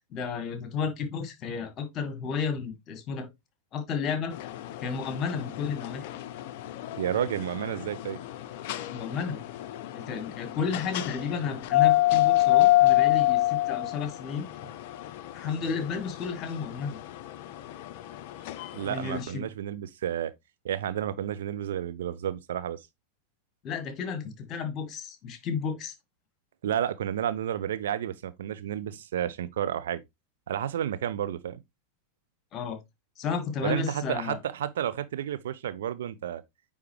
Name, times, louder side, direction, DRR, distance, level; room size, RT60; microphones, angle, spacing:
voice 1, 0.1-3.3 3.7-4.4 4.8-6.1 8.9-9.4 9.9-14.7 15.3-17.0 18.9-19.5 23.6-25.9 32.5-32.8 33.2-34.4, left 6 dB, 30° left, 1.5 m, -32 dB
sound 1, 4.3-19.2, left 16 dB, 50° left, 0.5 m, -28 dB
voice 2, 7.0-8.2 18.7-20.3 20.6-22.8 26.6-30.0 30.5-31.6 33.6-36.4, right 10 dB, 60° right, 0.5 m, -31 dB
9.3 x 3.5 x 3.2 m
figure-of-eight pair, 90°, 0 cm